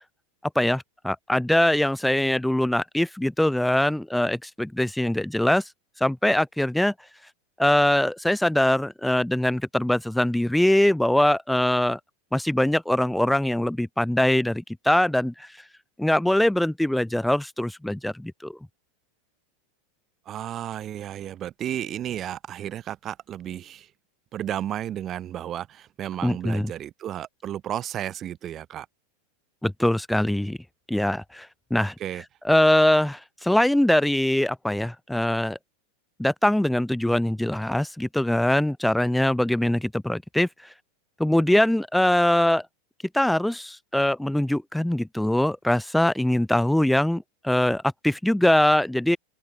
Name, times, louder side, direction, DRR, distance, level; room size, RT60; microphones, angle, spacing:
voice 1, 0.6-5.6 6.0-6.9 7.6-12.0 12.3-15.5 16.0-18.6 26.2-26.7 29.6-30.6 30.9-31.9 32.4-35.6 36.2-40.5 41.2-42.6 43.1-49.2, left 1 dB, 5° left, 0.6 m, -22 dB
voice 2, 20.3-23.9 24.3-28.9 32.0-32.2, right 11 dB, 35° right, 0.6 m, -33 dB
open air
hypercardioid pair, 95°, 0 cm